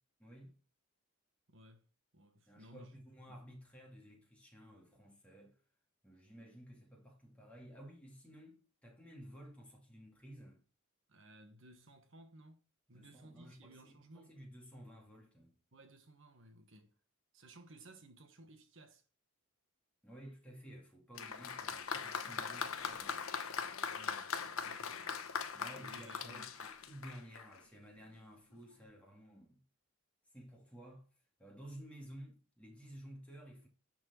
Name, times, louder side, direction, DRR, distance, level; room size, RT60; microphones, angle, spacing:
voice 1, 0.2-0.5 2.5-5.6 6.0-10.6 12.9-15.6 20.0-23.3 25.5-29.6 30.3-31.1 31.4-33.7, equal, 5° left, 2.3 m, -54 dB
voice 2, 1.5-1.9 2.1-2.9 3.3-3.4 11.1-14.4 15.7-16.9 17.3-19.0 23.9-25.1 25.8-26.5, right 1 dB, 55° right, 1.3 m, -58 dB
Applause, 21.2-27.6 28.5-28.6, left 6 dB, 75° left, 1.0 m, -41 dB
11.0 x 4.6 x 4.4 m
head